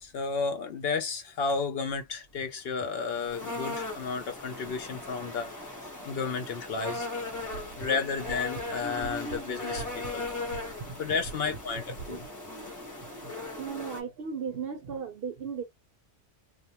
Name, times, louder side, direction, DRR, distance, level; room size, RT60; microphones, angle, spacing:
voice 1, 0.0-5.5 6.1-7.1 7.8-10.4 11.0-12.3, left 5 dB, 60° left, 0.8 m, -32 dB
sound 1, 2.8-14.0, left 2 dB, 20° left, 0.7 m, -38 dB
sound 2, 7.2-12.3, right 4 dB, 85° right, 0.9 m, -45 dB
voice 2, 13.0-13.3 13.6-15.6, right 6 dB, 65° right, 0.7 m, -36 dB
2.2 x 2.2 x 2.8 m
omnidirectional pair, 1.2 m